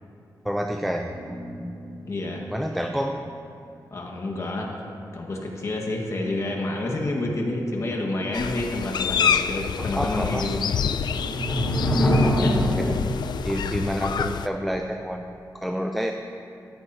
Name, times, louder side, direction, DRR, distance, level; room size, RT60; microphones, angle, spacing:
voice 1, 0.4-1.7 2.5-3.2 9.8-10.6 11.6-11.8 12.8-13.1 13.4-15.3 15.5-16.1, equal, ahead, 4 dB, 0.4 m, -29 dB
sound 1, 1.0-2.7 3.1-3.2 10.5-13.1, equal, 20° left, 2.5 m, -25 dB
voice 2, 2.1-2.4 3.9-4.9 5.1-10.6 12.4-12.6, left 2 dB, 40° left, 0 dB, 1.6 m, -29 dB
sound 2, 8.3-14.5, left 7 dB, 75° left, 0.4 m, -27 dB
15.5 x 13.0 x 2.8 m, 2.6 s
wide cardioid pair, 165°, 7 cm